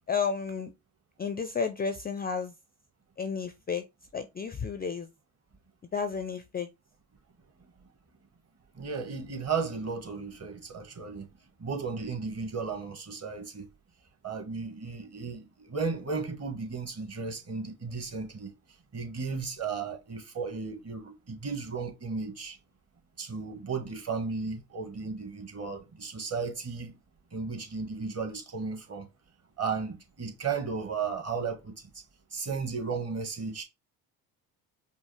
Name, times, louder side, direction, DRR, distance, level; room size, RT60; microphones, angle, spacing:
voice 1, 0.1-0.7 1.2-2.5 3.2-3.8 4.1-5.1 5.9-6.7, left 5 dB, 20° left, 0.4 m, -32 dB
voice 2, 8.8-11.3 11.6-13.7 14.2-18.5 18.9-22.6 23.2-27.0 27.3-29.1 29.6-31.8 32.3-33.6, right 5 dB, 35° right, 1.4 m, -34 dB
5.3 x 2.1 x 3.2 m
supercardioid pair, 75°, 45 cm